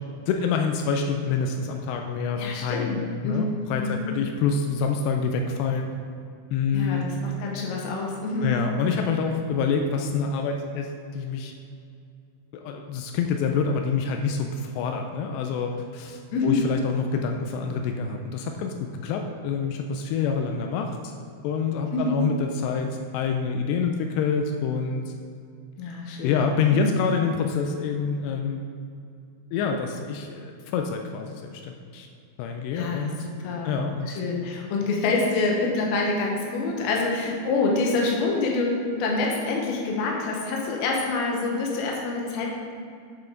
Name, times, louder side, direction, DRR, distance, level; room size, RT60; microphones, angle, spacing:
voice 1, 0.3-2.9 3.2-5.9 6.5-7.1 8.4-11.5 12.5-21.0 21.4-25.1 26.2-28.6 29.5-32.1 32.4-33.2 33.6-34.2, left 5 dB, 90° left, 4 dB, 2.7 m, -27 dB
voice 2, 2.4-4.1 6.7-8.5 16.3-16.6 21.9-22.2 25.8-26.9 32.7-33.8 34.1-42.5, left 3 dB, 70° left, -1 dB, 2.8 m, -27 dB
8.9 x 5.7 x 3.8 m, 2.4 s
omnidirectional pair, 4.8 m